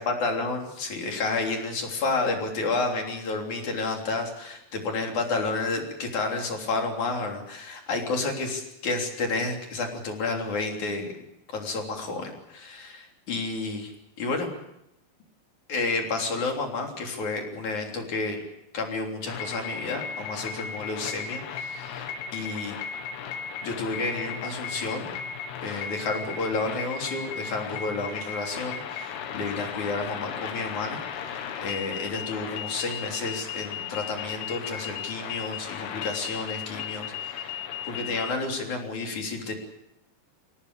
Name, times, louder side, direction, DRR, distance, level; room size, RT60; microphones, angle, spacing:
voice 1, 0.0-11.2 11.5-13.9 14.2-14.5 15.7-18.4 18.7-22.8 23.6-25.1 25.6-37.6 37.8-39.6, left 3 dB, 40° left, 2 dB, 4.2 m, -31 dB
sound 1, 19.3-38.3, left 7 dB, 65° left, 3.1 m, -36 dB
24.5 x 18.0 x 8.2 m, 0.82 s
omnidirectional pair, 5.8 m